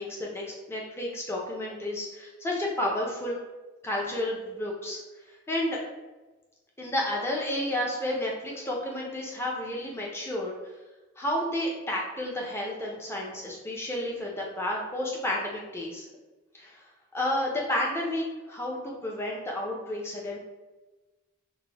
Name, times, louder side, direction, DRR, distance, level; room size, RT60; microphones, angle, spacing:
voice 1, 0.0-3.4 3.8-5.0 5.5-5.8 6.8-10.5 11.2-16.0 16.6-16.8 17.1-20.4, left 1 dB, 10° left, -3 dB, 0.5 m, -31 dB
4.1 x 2.1 x 3.3 m, 1.2 s
head